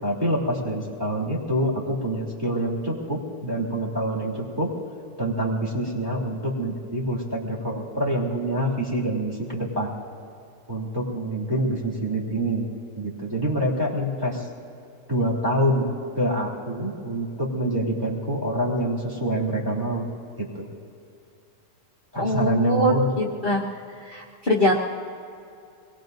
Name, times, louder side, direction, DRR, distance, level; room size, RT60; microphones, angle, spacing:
voice 1, 0.0-4.7 5.2-9.9 10.7-12.7 13.0-14.5 15.1-15.9 16.1-20.1 20.4-20.7 22.1-23.1, right 1 dB, 15° right, -4 dB, 3.0 m, -26 dB
voice 2, 22.2-23.6 24.1-24.7, equal, 35° left, -5 dB, 1.4 m, -22 dB
25.5 x 21.5 x 2.6 m, 2.5 s
omnidirectional pair, 1.7 m